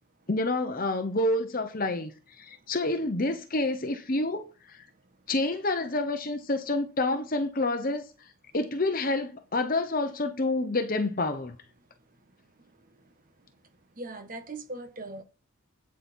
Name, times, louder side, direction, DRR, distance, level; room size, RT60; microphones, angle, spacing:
voice 1, 0.3-2.1 2.4-4.8 5.3-8.0 8.5-11.5, left 2 dB, 40° left, 0.9 m, -28 dB
voice 2, 14.0-15.2, right 2 dB, 40° right, 1.4 m, -39 dB
8.8 x 8.7 x 4.4 m
head